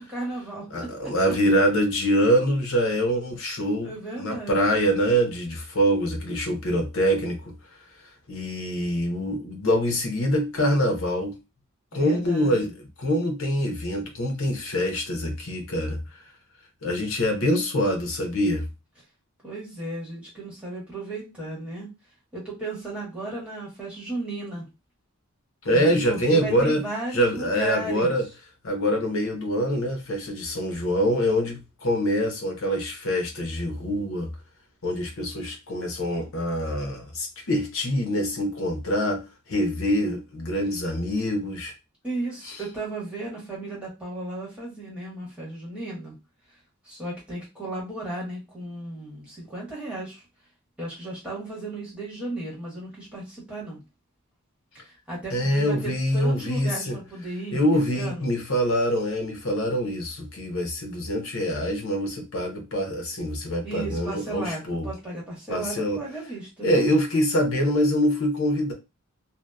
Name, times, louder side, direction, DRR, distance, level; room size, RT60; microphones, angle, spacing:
voice 1, 0.0-1.1 3.8-4.8 11.9-12.5 19.4-21.9 22.3-24.7 25.7-28.2 42.0-46.1 46.8-50.2 50.8-53.8 54.7-58.3 63.6-66.8, right 2 dB, 5° right, 1.1 m, -35 dB
voice 2, 0.7-3.9 4.2-7.5 8.3-11.4 11.9-12.7 13.0-16.0 16.8-18.7 25.6-26.8 27.1-28.3 28.6-34.3 34.8-39.2 39.5-41.7 55.3-57.0 57.5-64.9 65.5-66.0 66.6-68.7, equal, 70° left, 0.7 m, -25 dB
2.7 x 2.0 x 2.2 m
head